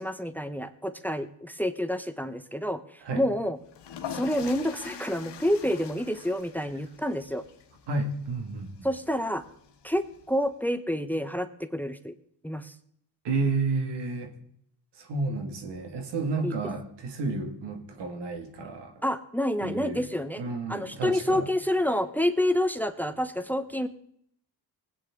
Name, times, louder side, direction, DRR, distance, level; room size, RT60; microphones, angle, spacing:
voice 1, 0.0-2.8 3.2-3.6 4.1-7.4 8.8-9.4 9.8-12.1 12.4-12.7 16.4-16.5 19.0-20.4 20.7-23.9, left 1 dB, 5° left, 11 dB, 0.8 m, -28 dB
sound 1, 3.7-10.5, left 8 dB, 80° left, 1.4 m, -44 dB
voice 2, 7.9-8.9 13.2-14.3 15.0-19.0 19.6-20.0 20.4-21.5, right 3 dB, 90° right, 5 dB, 2.1 m, -31 dB
20.0 x 9.0 x 3.7 m, 0.68 s
cardioid pair, 75°, 40 cm